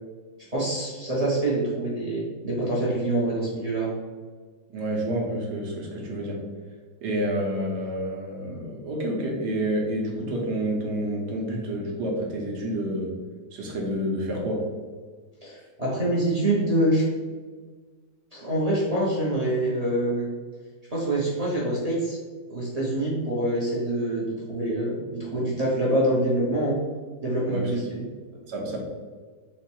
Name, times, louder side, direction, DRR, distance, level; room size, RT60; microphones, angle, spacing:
voice 1, 0.5-3.9 15.4-17.0 18.3-20.3 20.9-22.2 22.5-26.8 27.2-28.1, right 1 dB, 30° right, -6 dB, 0.7 m, -25 dB
voice 2, 4.7-6.4 7.0-13.2 13.5-14.7 27.5-27.7 28.3-28.8, right 1 dB, 70° right, -1 dB, 1.4 m, -29 dB
4.3 x 2.4 x 4.4 m, 1.5 s
omnidirectional pair, 2.0 m